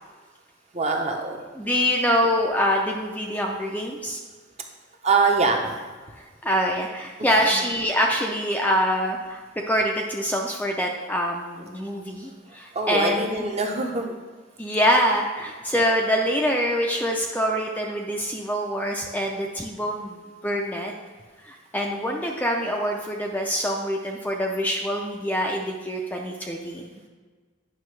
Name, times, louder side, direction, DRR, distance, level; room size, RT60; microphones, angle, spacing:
voice 1, 0.7-1.4 5.0-5.7 7.2-7.4 12.7-14.2, right 3 dB, 30° right, 2 dB, 0.7 m, -23 dB
voice 2, 1.6-4.2 6.4-9.4 9.7-13.4 14.6-20.9 21.4-27.0, equal, 10° left, 0 dB, 0.4 m, -25 dB
9.3 x 6.0 x 3.2 m, 1.4 s
head